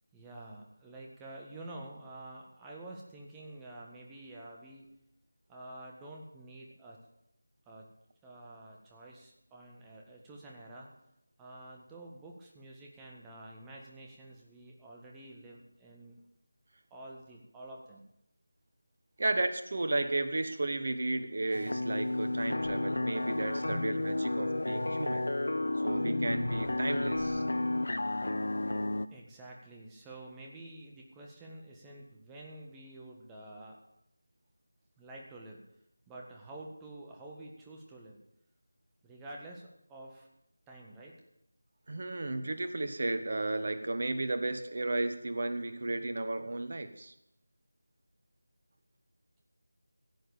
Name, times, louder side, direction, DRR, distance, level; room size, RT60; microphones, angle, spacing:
voice 1, 0.1-4.9 5.5-7.0 7.6-7.9 8.2-10.9 11.4-16.2 16.9-18.0 29.1-33.8 35.0-35.6 36.1-38.2 39.0-40.3 40.7-41.2, right 1 dB, 10° right, -1 dB, 1.5 m, -49 dB
voice 2, 19.2-25.2 25.8-27.4 41.9-47.1, right 2 dB, 45° right, 9 dB, 1.3 m, -33 dB
sound 1, 21.5-29.1, left 2 dB, 60° left, 0.6 m, -32 dB
16.5 x 7.7 x 7.1 m, 0.83 s
figure-of-eight pair, 165°, 0 cm